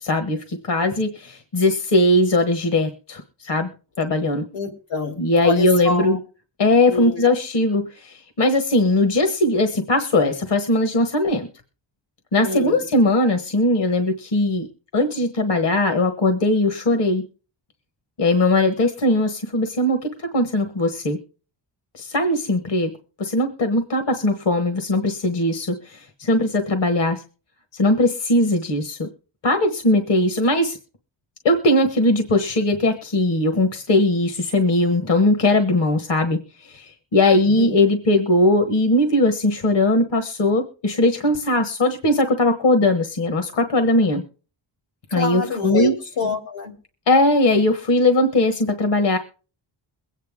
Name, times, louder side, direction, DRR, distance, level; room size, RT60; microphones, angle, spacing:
voice 1, 0.0-3.7 4.0-4.4 5.2-6.2 6.6-11.5 12.3-14.7 14.9-17.2 18.2-21.2 21.9-22.9 23.2-27.2 27.7-29.1 29.4-30.8 31.4-44.2 45.1-45.9 47.1-49.2, left 1 dB, 70° left, 7 dB, 1.4 m, -19 dB
voice 2, 4.5-6.2 6.9-7.2 12.4-12.8 37.3-37.8 45.1-46.7, left 3 dB, 90° left, 4 dB, 3.4 m, -26 dB
22.5 x 9.1 x 3.6 m, 0.37 s
wide cardioid pair, 125°, 44 cm